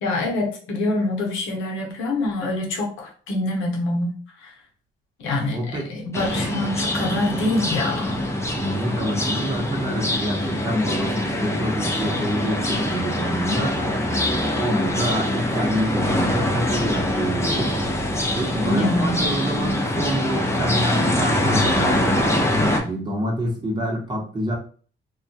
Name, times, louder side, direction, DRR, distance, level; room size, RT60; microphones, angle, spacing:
voice 1, 0.0-4.1 4.4-4.5 5.2-8.2 18.7-19.2, left 2 dB, 90° left, -1 dB, 0.8 m, -25 dB
voice 2, 5.5-5.9 8.6-13.8 14.3-17.8 18.3-22.3 22.8-24.5, equal, 20° right, -2 dB, 0.9 m, -27 dB
sound 1, 6.1-22.8, left 1 dB, 15° left, 0.5 m, -24 dB
2.2 x 2.2 x 2.7 m, 0.42 s
cardioid pair, 90°, 20 cm